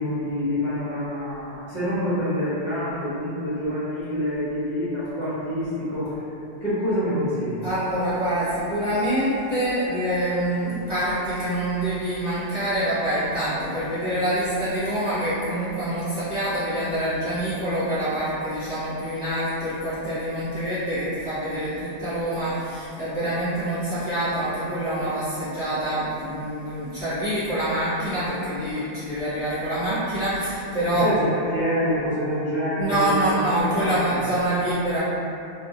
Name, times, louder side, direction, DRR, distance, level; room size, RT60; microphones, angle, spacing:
voice 1, 0.0-6.2 6.6-7.6 30.8-34.2, equal, 45° left, -13 dB, 0.9 m, -26 dB
voice 2, 7.6-31.1 32.8-35.0, right 1 dB, 30° right, -15 dB, 0.8 m, -26 dB
2.2 x 2.2 x 2.7 m, 2.7 s
omnidirectional pair, 1.1 m